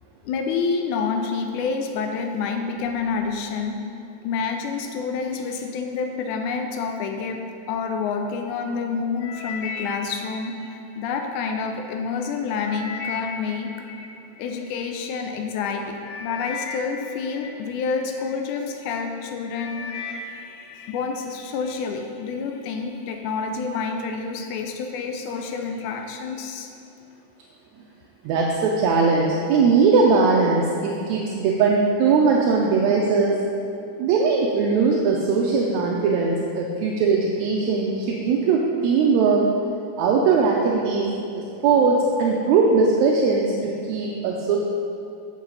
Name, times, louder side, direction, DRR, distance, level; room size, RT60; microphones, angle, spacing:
voice 1, 0.2-3.8 4.2-13.9 14.4-26.7, left 5 dB, 90° left, 4 dB, 2.1 m, -28 dB
sound 1, 9.2-11.5 12.1-14.9 15.6-15.7 16.0-18.4 18.9-19.2 19.5-21.0 21.4-21.8 22.4-22.5, left 5 dB, 75° left, 1.8 m, -37 dB
voice 2, 28.2-33.4 34.0-39.5 40.0-41.1 41.4-44.6, right 4 dB, 80° right, -2 dB, 1.9 m, -20 dB
8.1 x 7.0 x 4.0 m, 2.6 s
omnidirectional pair, 3.5 m